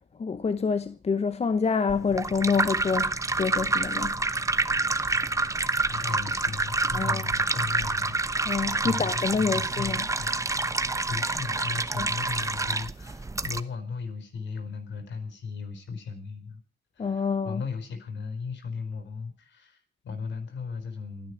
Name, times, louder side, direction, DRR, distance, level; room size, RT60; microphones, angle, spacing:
voice 1, 0.2-3.1 3.4-4.1 6.9-7.2 8.5-10.0 12.0-12.1 17.0-17.6, left 5 dB, 30° left, 0.9 m, -27 dB
sound 1, 1.9-13.6, right 3 dB, 15° right, 0.9 m, -28 dB
voice 2, 5.9-8.2 8.8-10.4 11.1-16.6 17.0-21.3, left 5 dB, 65° left, 4.7 m, -36 dB
29.0 x 10.0 x 4.7 m
cardioid pair, 90°, 20 cm